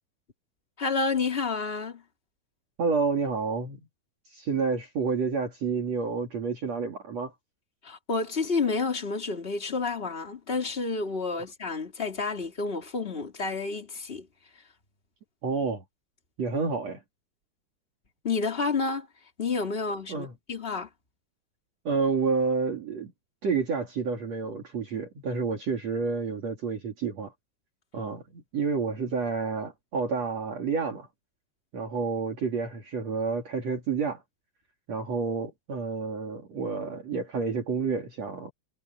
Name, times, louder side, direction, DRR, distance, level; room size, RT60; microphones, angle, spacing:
voice 1, 0.8-2.0 7.8-14.3 18.2-19.1 19.4-20.9, left 4 dB, 15° left, 2.5 m, -30 dB
voice 2, 2.8-3.8 4.3-7.3 15.4-15.8 16.4-17.0 20.1-20.3 21.9-23.1 23.4-27.3 27.9-31.1 31.7-34.2 34.9-38.5, right 4 dB, 45° right, 3.5 m, -29 dB
omnidirectional pair, 4.3 m